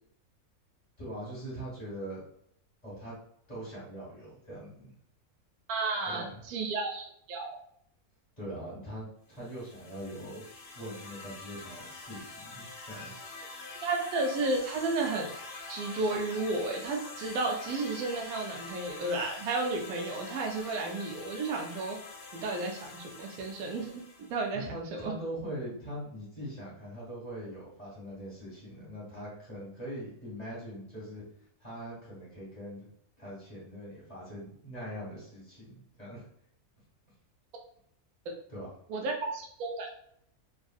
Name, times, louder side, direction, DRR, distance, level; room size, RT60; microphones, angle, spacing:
voice 1, 1.0-2.2 2.8-3.1 3.5-4.9 6.1-6.4 8.4-10.4 10.7-13.1 24.6-31.2 31.6-32.9 33.2-36.2 38.5-38.7, equal, 30° left, -8 dB, 1.7 m, -42 dB
voice 2, 5.7-7.6 13.8-15.3 15.7-22.0 22.3-24.0 24.3-24.6 24.9-25.1 38.3-38.4 38.9-39.9, right 3 dB, 80° right, 1 dB, 1.1 m, -32 dB
sound 1, 9.4-24.5, left 3 dB, 70° left, 0.5 m, -45 dB
3.6 x 2.4 x 2.3 m, 0.68 s
omnidirectional pair, 1.5 m